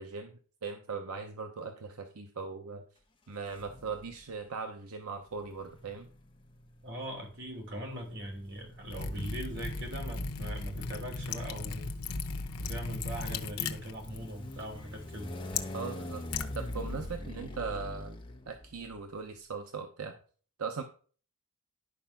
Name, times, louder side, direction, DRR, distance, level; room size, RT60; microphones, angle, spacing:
voice 1, 0.0-2.8 3.3-6.1 15.7-16.2 16.5-20.1 20.6-20.8, right 5 dB, 75° right, 6 dB, 0.8 m, -39 dB
sound 1, 3.5-4.2 5.3-19.0, left 1 dB, 20° left, 1.2 m, -44 dB
voice 2, 6.8-12.0 12.6-15.3, equal, 55° right, 2 dB, 3.1 m, -41 dB
Liquid, 8.9-17.2, left 4 dB, 85° left, 0.9 m, -38 dB
11.0 x 4.8 x 5.8 m, 0.43 s
head